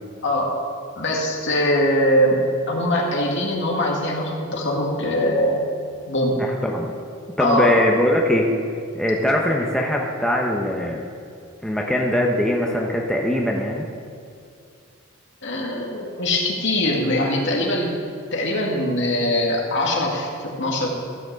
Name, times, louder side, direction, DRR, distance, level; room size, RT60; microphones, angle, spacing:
voice 1, 1.0-5.6 6.1-6.4 7.4-7.8 15.4-17.9 18.3-20.9, left 1 dB, 60° left, -1 dB, 2.1 m, -22 dB
voice 2, 6.4-6.9 7.4-8.5 9.0-11.0 11.6-13.9, left 1 dB, 5° left, -1 dB, 0.9 m, -21 dB
14.5 x 6.0 x 7.4 m, 2.4 s
head